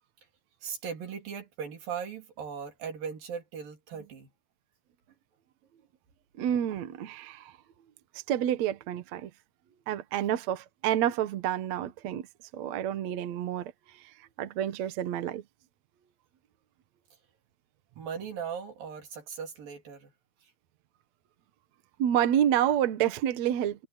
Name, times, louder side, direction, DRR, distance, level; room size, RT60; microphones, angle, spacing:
voice 1, 0.6-4.3 18.0-20.1, right 7 dB, 85° right, 5.3 m, -38 dB
voice 2, 6.4-7.5 8.3-9.3 9.9-12.3 12.5-13.7 14.0-14.1 14.4-15.4 22.0-23.9, right 10 dB, 60° right, 2.2 m, -28 dB
omnidirectional pair, 3.9 m